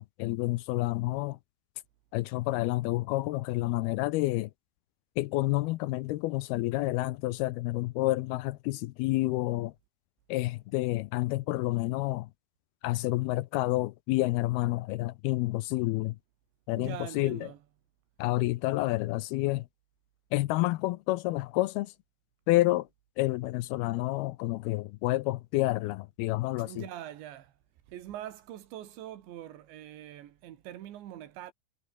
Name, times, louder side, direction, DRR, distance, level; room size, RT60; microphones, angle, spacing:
voice 1, 0.0-1.4 2.1-4.5 5.2-9.7 10.3-12.3 12.8-16.2 16.7-17.5 18.2-19.7 20.3-21.9 22.5-22.9 23.2-26.9, left 19 dB, 80° left, 2.3 m, -29 dB
voice 2, 16.7-17.6 26.6-27.5 27.9-31.5, right 12 dB, 80° right, 4.2 m, -43 dB
omnidirectional pair, 5.1 m